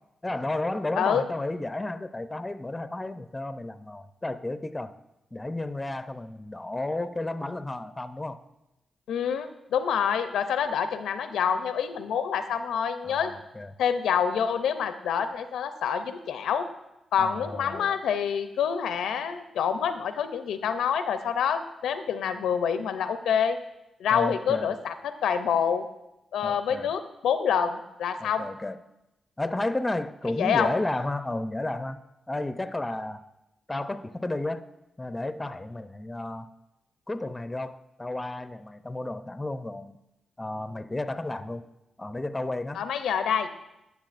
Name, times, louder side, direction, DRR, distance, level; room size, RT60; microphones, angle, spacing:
voice 1, 0.2-4.9 5.3-8.4 13.0-13.7 17.2-18.0 24.1-24.8 26.4-26.9 28.2-28.8 29.4-32.0 32.3-33.2 33.7-34.7 35.0-36.5 37.1-40.0 40.4-41.6 42.0-42.8, left 2 dB, 20° left, 12 dB, 0.5 m, -32 dB
voice 2, 1.0-1.3 9.1-13.3 13.8-16.7 17.1-23.6 24.0-25.9 26.3-28.5 30.4-30.7 42.7-43.5, left 7 dB, 85° left, 10 dB, 0.5 m, -27 dB
11.5 x 7.2 x 2.5 m, 0.92 s
supercardioid pair, 50°, 0 cm